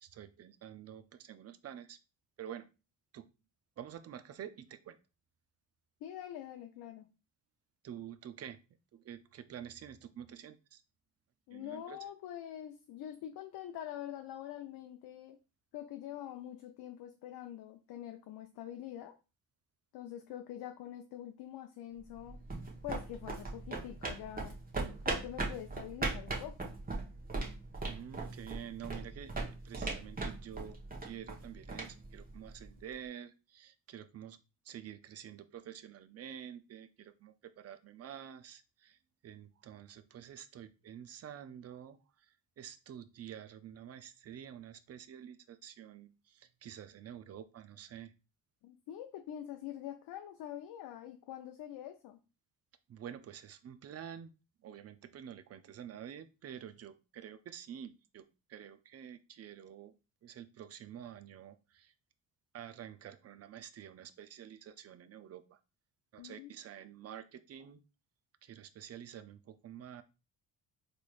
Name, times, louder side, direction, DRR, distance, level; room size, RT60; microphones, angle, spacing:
voice 1, 0.0-2.0 2.4-2.7 3.1-3.3 3.8-5.0 7.8-8.6 8.9-10.8 11.5-12.0 27.9-29.3 29.6-30.8 31.0-34.4 34.6-48.1 52.9-54.3 54.6-59.9 60.2-61.9 62.5-65.6 66.1-67.8 68.4-70.0, right 9 dB, 40° right, 12 dB, 0.5 m, -48 dB
voice 2, 6.0-7.1 11.5-15.4 15.7-19.2 19.9-22.4 22.8-24.5 25.0-26.7 48.6-52.2 66.2-66.5, left 11 dB, 70° left, 5 dB, 0.6 m, -45 dB
sound 1, 22.0-32.8, right 3 dB, 20° right, 1.1 m, -40 dB
3.7 x 3.2 x 2.4 m, 0.31 s
supercardioid pair, 70°, 39 cm